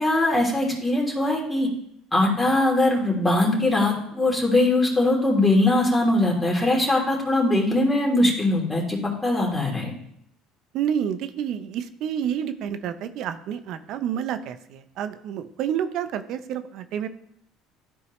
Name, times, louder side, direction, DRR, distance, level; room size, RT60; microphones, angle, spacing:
voice 1, 0.0-1.7 2.1-9.9, left 2 dB, 10° left, -3 dB, 3.0 m, -21 dB
voice 2, 10.7-17.1, right 9 dB, 65° right, 11 dB, 0.6 m, -29 dB
13.0 x 4.6 x 3.1 m, 0.73 s
hypercardioid pair, 75°, 0 cm